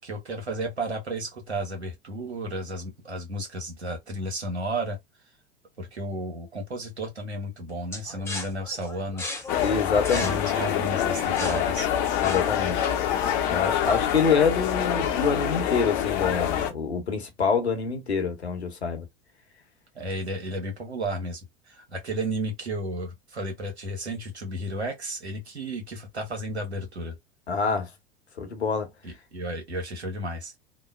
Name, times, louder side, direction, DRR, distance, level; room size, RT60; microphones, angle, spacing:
voice 1, 0.0-5.0 5.8-9.3 10.1-11.9 19.9-27.2 29.0-30.5, right 1 dB, 80° right, 1.1 m, -33 dB
sound 1, 7.9-12.8, left 2 dB, 10° left, 0.8 m, -37 dB
sound 2, 9.5-16.7, left 10 dB, 45° left, 0.7 m, -26 dB
voice 2, 9.6-10.5 12.2-12.9 13.5-19.1 27.5-27.9 28.4-28.9, left 5 dB, 80° left, 0.9 m, -26 dB
3.0 x 2.0 x 2.4 m
figure-of-eight pair, 80°, 32 cm